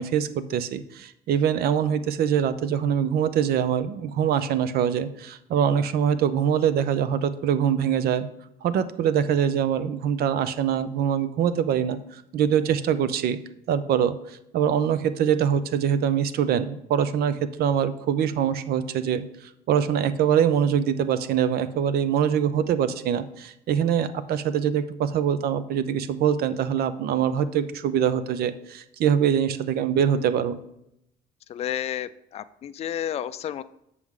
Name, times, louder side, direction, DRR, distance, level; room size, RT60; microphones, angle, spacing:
voice 1, 0.0-8.3 8.6-13.4 13.7-19.2 19.7-30.5, right 8 dB, 65° right, 13 dB, 0.6 m, -24 dB
voice 2, 31.5-33.6, left 10 dB, 40° left, 12 dB, 0.4 m, -31 dB
7.8 x 6.1 x 3.7 m, 0.78 s
cardioid pair, 110°, 17 cm